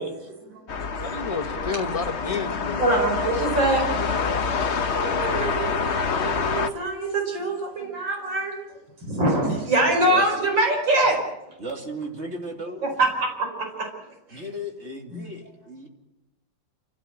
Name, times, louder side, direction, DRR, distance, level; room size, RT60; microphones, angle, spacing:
voice 1, 0.0-1.1 1.6-1.7 2.8-4.2 4.6-8.6 9.0-11.2 12.8-13.9 14.3-14.5 15.1-15.3, right 2 dB, 85° right, 2 dB, 5.3 m, -25 dB
sound 1, 0.7-6.7, left 5 dB, 45° left, 1.2 m, -26 dB
voice 2, 1.0-3.3, left 4 dB, 20° left, 7 dB, 1.1 m, -31 dB
voice 3, 10.0-10.4 11.6-12.9 14.3-15.9, right 1 dB, 35° right, 2 dB, 3.3 m, -35 dB
28.0 x 16.5 x 7.9 m, 0.95 s
omnidirectional pair, 2.0 m